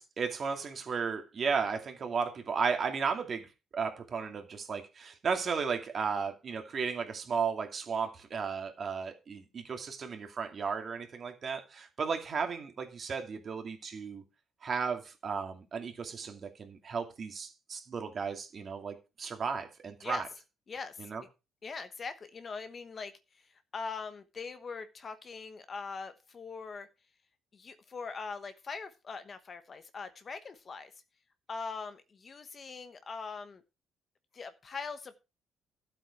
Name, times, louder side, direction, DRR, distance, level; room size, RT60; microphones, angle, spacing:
voice 1, 0.2-3.5 3.7-14.2 14.6-20.2 21.0-21.2, right 5 dB, 35° right, 2.4 m, -34 dB
voice 2, 20.7-21.3 21.6-26.9 27.5-30.9 31.5-33.6 34.3-35.2, left 4 dB, 30° left, 1.0 m, -42 dB
12.5 x 7.9 x 4.6 m
cardioid pair, 145°, 0 cm